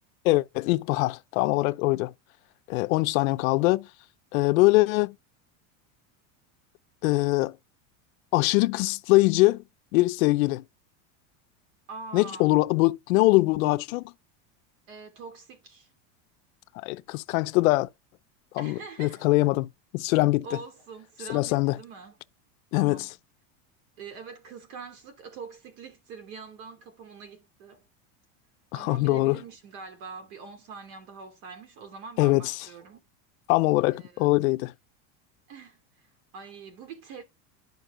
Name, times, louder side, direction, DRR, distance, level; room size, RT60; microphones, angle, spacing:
voice 1, 0.2-2.1 2.7-3.9 4.3-5.2 7.0-7.6 8.3-9.6 9.9-10.6 12.1-14.1 16.8-17.9 18.5-19.7 19.9-20.4 21.3-21.8 22.7-23.1 28.7-29.4 32.2-32.5 33.5-34.7, left 21 dB, 75° left, 0.7 m, -23 dB
voice 2, 11.9-12.5 14.9-15.9 18.6-19.3 20.4-22.2 22.7-23.1 24.0-27.8 28.7-33.0 33.9-34.4 35.5-36.1 36.3-37.2, right 5 dB, 60° right, 2.9 m, -44 dB
10.5 x 5.2 x 3.7 m
supercardioid pair, 170°, 42 cm